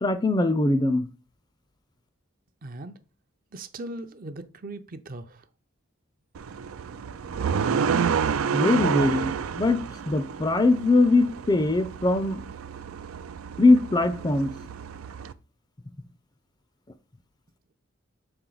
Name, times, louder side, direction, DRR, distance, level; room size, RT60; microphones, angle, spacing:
voice 1, 0.0-1.0 8.5-9.8 10.1-12.4 13.6-14.5, left 2 dB, 20° left, 0.4 m, -21 dB
voice 2, 2.6-3.0 3.5-5.5, right 2 dB, 45° right, 0.6 m, -39 dB
sound 1, 6.4-15.3, right 6 dB, 90° right, 0.4 m, -30 dB
6.6 x 4.4 x 3.9 m
head